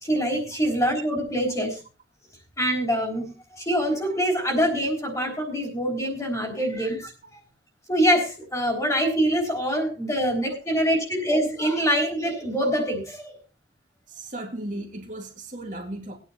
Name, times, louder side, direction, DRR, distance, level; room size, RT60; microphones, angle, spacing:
voice 1, 0.0-1.8 2.6-7.4 7.9-13.4, equal, 20° left, -1 dB, 3.6 m, -25 dB
voice 2, 14.1-16.2, right 1 dB, 45° right, 1 dB, 1.9 m, -36 dB
20.5 x 9.4 x 2.8 m, 0.33 s
head